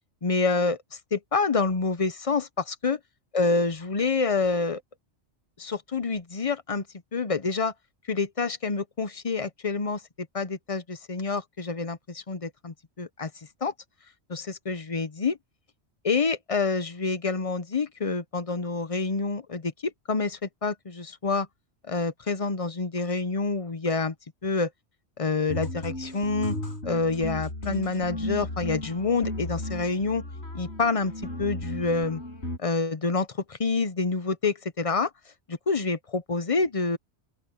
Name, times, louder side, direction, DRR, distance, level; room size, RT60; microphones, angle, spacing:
voice 1, 0.2-0.8 1.1-3.0 3.3-4.8 5.6-6.8 7.1-7.7 8.1-13.3 13.6-13.7 14.3-15.4 16.0-21.5 21.9-24.1 24.4-24.7 25.2-26.6 26.8-30.2 30.5-31.1 31.4-32.2 32.6-35.1 35.5-37.0, left 4 dB, 35° left, 0.8 m, -27 dB
sound 1, 25.5-32.6, left 1 dB, 80° left, 5.7 m, -34 dB
open air
omnidirectional pair, 1.2 m